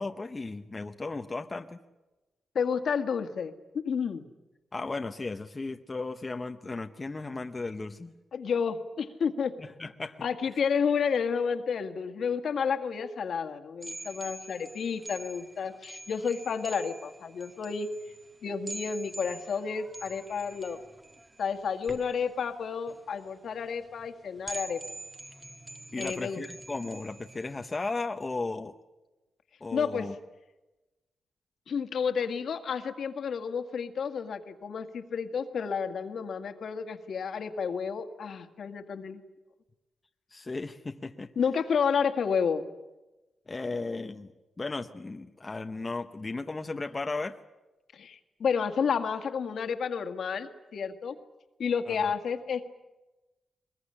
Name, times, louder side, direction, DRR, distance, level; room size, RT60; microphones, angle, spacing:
voice 1, 0.0-1.8 4.7-8.1 9.6-10.2 25.9-28.7 29.6-30.1 40.3-41.3 43.5-44.3 44.6-47.4 51.9-52.0, left 3 dB, 25° left, 6 dB, 0.9 m, -35 dB
voice 2, 2.6-3.5 3.8-4.2 8.3-9.5 10.2-17.9 18.4-20.8 21.4-24.8 26.0-26.4 29.7-30.1 31.7-39.2 41.4-42.7 47.9-51.2 51.6-52.6, left 6 dB, 65° left, 7 dB, 1.9 m, -31 dB
sound 1, 13.8-27.8, right 2 dB, 20° right, 1.7 m, -45 dB
22.0 x 21.0 x 9.9 m, 1.1 s
wide cardioid pair, 120°, 0 cm